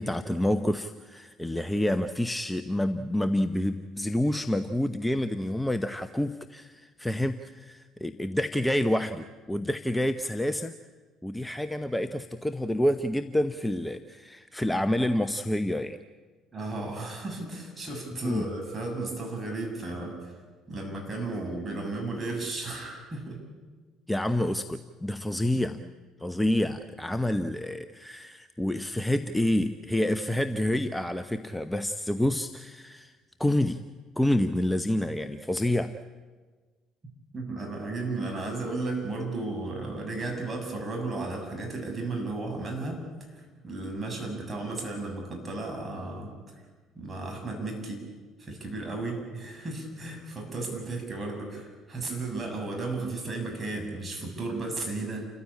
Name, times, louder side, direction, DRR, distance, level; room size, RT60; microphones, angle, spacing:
voice 1, 0.0-10.7 11.2-16.0 18.2-18.5 24.1-25.8 26.2-33.1 33.4-33.8 34.2-36.0, left 1 dB, 10° left, 11 dB, 0.9 m, -28 dB
voice 2, 16.5-20.4 20.7-23.4 25.5-25.7 37.3-43.1 43.3-46.3 47.0-48.0 48.4-55.3, right 2 dB, 30° right, 1 dB, 7.4 m, -34 dB
29.5 x 15.0 x 8.7 m, 1.4 s
figure-of-eight pair, 55°, 0 cm